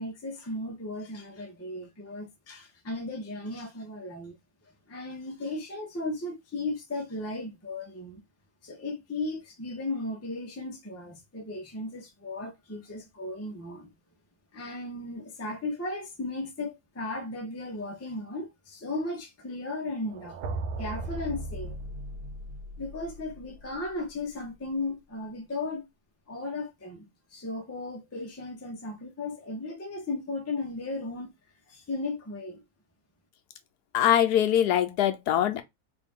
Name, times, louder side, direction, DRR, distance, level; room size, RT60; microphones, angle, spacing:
voice 1, 0.0-4.4 4.9-8.2 8.6-13.9 14.5-20.4 20.8-21.8 22.8-25.8 26.3-31.3 31.7-32.6, left 2 dB, 25° left, 0.3 m, -36 dB
sound 1, 20.1-24.1, right 2 dB, 80° right, 1.2 m, -37 dB
voice 2, 33.9-35.6, left 11 dB, 85° left, 1.2 m, -23 dB
3.3 x 2.6 x 3.6 m
omnidirectional pair, 1.7 m